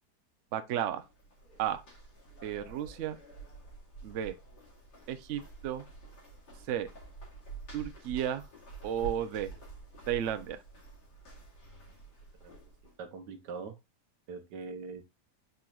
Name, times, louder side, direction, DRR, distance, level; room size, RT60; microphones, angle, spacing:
voice 1, 0.5-1.0 1.6-1.8 2.4-3.2 4.0-4.3 5.1-5.9 6.7-6.9 7.7-8.4 8.8-9.5 10.1-10.6, right 10 dB, 65° right, 0.8 m, -33 dB
sound 1, 1.0-13.0, right 4 dB, 90° left, 2.8 m, -48 dB
voice 2, 13.0-13.7 14.3-15.0, right 4 dB, 85° right, 1.5 m, -42 dB
5.3 x 4.4 x 2.3 m
omnidirectional pair, 1.8 m